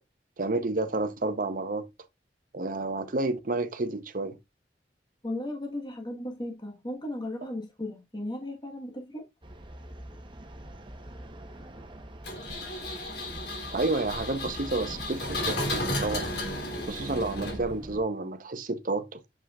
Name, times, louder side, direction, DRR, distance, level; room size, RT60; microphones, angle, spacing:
voice 1, 0.4-1.9 2.5-4.4 13.7-16.3 16.9-19.2, right 2 dB, 50° right, 0.8 m, -30 dB
voice 2, 5.2-9.3, left 1 dB, 25° left, 1.3 m, -36 dB
sound 1, 9.4-18.0, right 1 dB, 30° right, 1.0 m, -43 dB
Engine, 12.2-17.9, left 1 dB, 65° left, 3.0 m, -34 dB
7.4 x 5.5 x 2.4 m
head